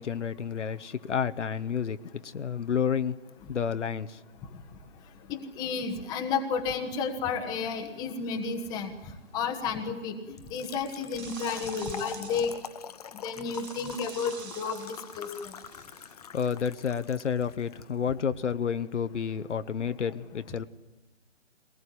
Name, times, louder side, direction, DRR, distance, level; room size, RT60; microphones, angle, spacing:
voice 1, 0.0-3.2 3.5-4.2 16.3-20.6, left 7 dB, 75° left, 12 dB, 1.1 m, -30 dB
voice 2, 5.3-8.9 9.3-10.2 10.5-12.5 13.1-15.5, left 5 dB, 10° left, 4 dB, 1.3 m, -32 dB
sound 1, 8.3-8.5 10.9-12.6 13.5-16.1, right 6 dB, 60° right, 1.9 m, -47 dB
Trickle dribble / Fill (with liquid), 10.4-17.8, left 8 dB, 30° left, 0.8 m, -44 dB
22.5 x 19.5 x 10.0 m, 1.1 s
hypercardioid pair, 160°, 36 cm